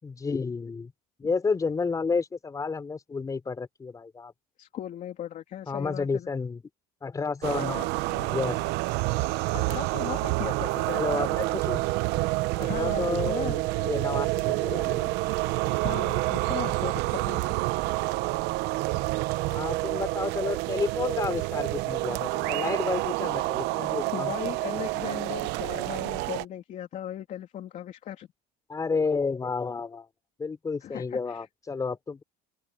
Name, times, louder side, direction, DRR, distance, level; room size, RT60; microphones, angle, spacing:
voice 1, 0.0-0.9 1.2-4.3 5.7-6.6 7.0-8.6 10.9-11.8 12.6-15.1 19.5-24.3 28.7-30.1 30.4-32.2, left 4 dB, 20° left, 4.1 m, -31 dB
voice 2, 4.6-6.3 7.5-7.7 9.5-10.9 12.6-13.5 15.8-17.4 24.1-28.3 30.8-31.5, left 11 dB, 45° left, 3.1 m, -37 dB
sound 1, 7.4-26.4, right 20 dB, 70° right, 0.8 m, -28 dB
open air
cardioid pair, 145°, 18 cm